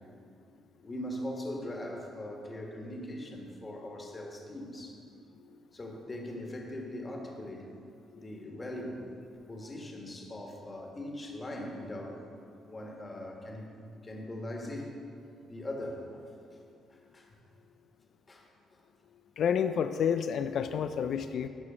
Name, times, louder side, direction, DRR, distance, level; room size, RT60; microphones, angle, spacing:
voice 1, 0.8-5.0 5.7-7.7 8.2-9.0 9.5-12.3 12.6-13.7 14.0-14.9 15.5-16.3 16.9-17.3 18.3-18.4, left 1 dB, 25° left, 0 dB, 1.6 m, -40 dB
voice 2, 19.4-21.5, left 7 dB, 65° left, 9 dB, 0.3 m, -29 dB
13.0 x 4.8 x 5.0 m, 2.4 s
cardioid pair, 90°, 0 cm